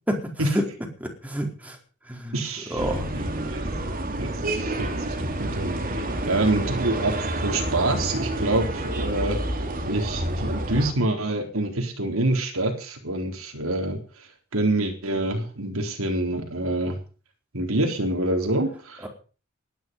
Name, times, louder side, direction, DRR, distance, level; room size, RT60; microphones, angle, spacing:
voice 1, 0.1-0.6 1.0-1.8 2.1-2.4 2.7-3.1 19.0-19.1, equal, 5° right, 1 dB, 4.5 m, -28 dB
voice 2, 2.3-2.9 3.1-3.6 4.2-9.4 9.9-14.0 14.5-17.0 17.5-19.0, right 2 dB, 80° right, 3 dB, 4.1 m, -26 dB
sound 1, 2.8-10.9, right 1 dB, 45° right, 3.1 m, -29 dB
19.0 x 11.5 x 5.5 m, 0.38 s
head